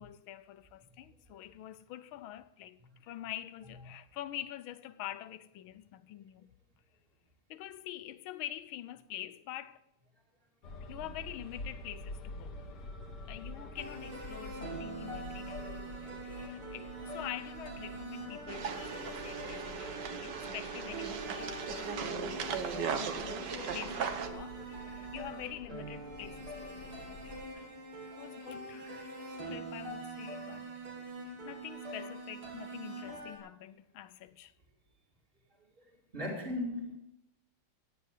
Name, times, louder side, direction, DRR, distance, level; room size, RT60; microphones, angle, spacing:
voice 1, 0.0-6.5 7.5-9.8 10.8-12.6 13.2-22.0 22.6-27.4 28.2-28.9 29.5-30.8 31.2-34.5, left 12 dB, 75° left, 1.5 m, -46 dB
sound 1, 10.6-27.5, left 2 dB, 55° left, 2.1 m, -48 dB
sound 2, 13.8-33.4, right 2 dB, 75° right, 3.9 m, -44 dB
sound 3, 18.5-24.3, right 7 dB, 60° right, 1.6 m, -38 dB
voice 2, 28.1-28.4 28.7-29.5 35.8-37.0, left 1 dB, 25° right, 2.5 m, -40 dB
16.5 x 9.6 x 6.6 m
omnidirectional pair, 2.4 m